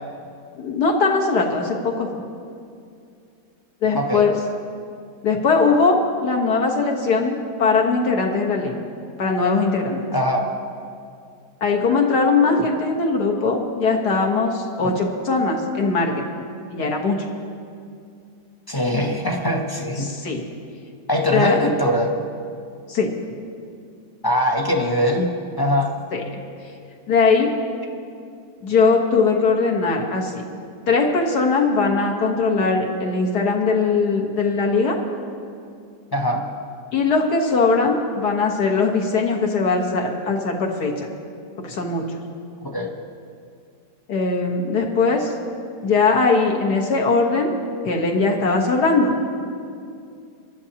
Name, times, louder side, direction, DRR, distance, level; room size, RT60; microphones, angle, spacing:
voice 1, 0.6-2.2 3.8-4.3 5.2-8.8 9.2-10.0 11.6-16.2 16.7-17.2 20.0-20.4 21.3-21.6 22.9-23.1 26.1-26.4 27.1-27.5 28.6-30.3 30.9-35.0 36.9-41.1 41.6-42.0 44.1-45.3 45.8-47.5 47.9-49.1, left 4 dB, 70° left, 0 dB, 1.9 m, -20 dB
voice 2, 10.1-10.5 14.8-14.9 18.7-20.1 21.1-22.1 24.2-25.9 36.1-36.4 42.6-42.9, left 1 dB, 25° left, 2 dB, 0.4 m, -22 dB
23.5 x 12.5 x 2.9 m, 2.4 s
omnidirectional pair, 1.8 m